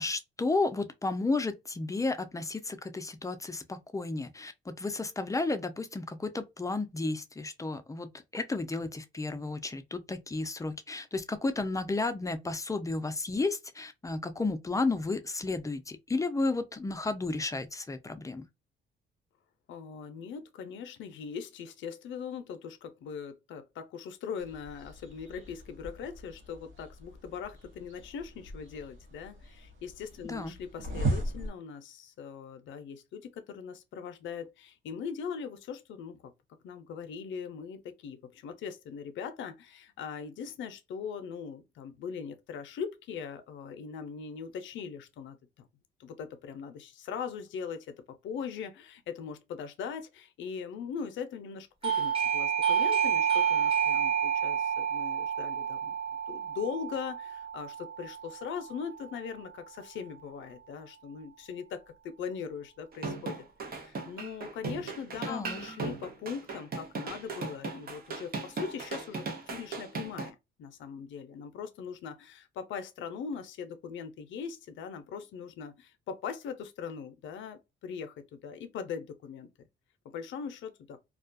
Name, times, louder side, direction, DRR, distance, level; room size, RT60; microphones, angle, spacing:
voice 1, 0.0-18.4 30.3-30.5 65.3-65.7, left 3 dB, 15° left, 0.4 m, -32 dB
voice 2, 19.7-36.3 36.6-45.7 46.0-48.0 48.2-55.9 56.3-79.7 80.0-81.0, left 6 dB, 70° left, 0.5 m, -40 dB
sound 1, 24.4-31.5, right 2 dB, 75° right, 1.0 m, -38 dB
Doorbell, 51.8-58.3, right 8 dB, 30° right, 1.1 m, -29 dB
sound 2, 62.9-70.3, right 4 dB, 50° right, 0.7 m, -38 dB
2.3 x 2.2 x 2.4 m
cardioid pair, 90°, 20 cm